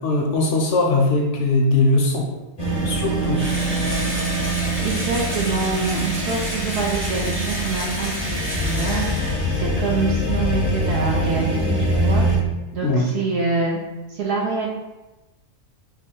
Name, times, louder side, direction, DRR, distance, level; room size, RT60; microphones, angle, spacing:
voice 1, 0.0-2.2 2.8-3.4 12.8-13.1, left 2 dB, 65° left, 0 dB, 0.8 m, -20 dB
sound 1, 2.6-12.4, right 1 dB, 40° left, 0.5 m, -24 dB
Engine / Drill, 3.4-9.9, equal, 20° right, 0.3 m, -30 dB
voice 2, 4.8-9.1 9.6-12.3 12.7-13.8 14.1-14.7, right 4 dB, 60° right, -2 dB, 0.7 m, -25 dB
3.0 x 2.3 x 4.3 m, 1.0 s
omnidirectional pair, 1.4 m